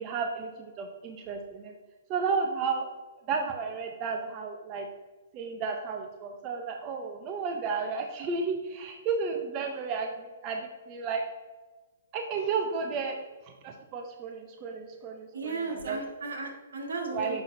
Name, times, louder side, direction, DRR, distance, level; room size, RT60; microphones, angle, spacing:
voice 1, 0.0-1.7 2.1-2.9 3.3-4.9 5.3-11.2 12.1-13.2 13.6-16.0 17.1-17.4, right 5 dB, 30° right, 3 dB, 0.6 m, -32 dB
voice 2, 15.3-17.4, right 3 dB, 80° right, 1 dB, 1.6 m, -35 dB
6.8 x 5.6 x 2.6 m, 1.2 s
hypercardioid pair, 145°, 0 cm